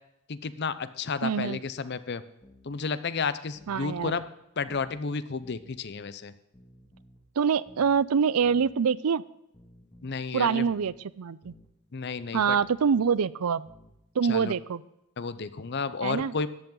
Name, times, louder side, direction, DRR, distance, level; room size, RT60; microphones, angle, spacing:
voice 1, 0.3-2.2 2.6-4.2 4.6-6.3 10.0-10.6 11.9-12.6 14.3-14.5 15.2-16.5, left 5 dB, 50° left, 14 dB, 0.6 m, -32 dB
voice 2, 1.2-1.6 3.7-4.2 7.4-9.2 10.3-11.5 12.3-13.7 14.1-14.8 16.0-16.3, right 6 dB, 85° right, 20 dB, 0.5 m, -25 dB
sound 1, 2.4-2.7 3.5-4.3 4.7-5.0 5.4-5.8 6.5-7.3 7.7-8.0 8.4-8.8 9.5-10.2 10.7-11.0 11.4-11.7 12.5-13.2 13.7-14.0, equal, 25° left, 1.7 m, -55 dB
14.5 x 10.5 x 3.9 m, 0.84 s
head